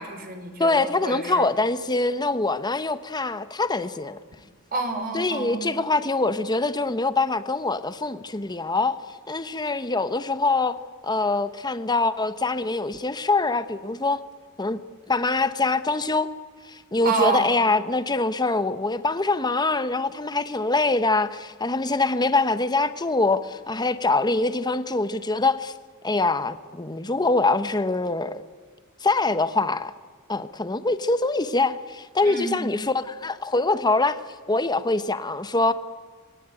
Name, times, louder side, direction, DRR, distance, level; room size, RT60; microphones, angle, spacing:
voice 1, 0.0-1.5 4.7-5.7 17.0-17.6 32.2-32.8, right 3 dB, 45° right, 4.3 m, -28 dB
voice 2, 0.6-4.2 5.1-9.0 9.3-10.8 11.0-14.2 14.6-14.8 15.1-16.3 16.7-25.7 26.0-28.3 29.0-29.9 30.3-34.2 34.5-35.7, left 3 dB, 20° left, 1.1 m, -24 dB
27.5 x 21.5 x 9.2 m
head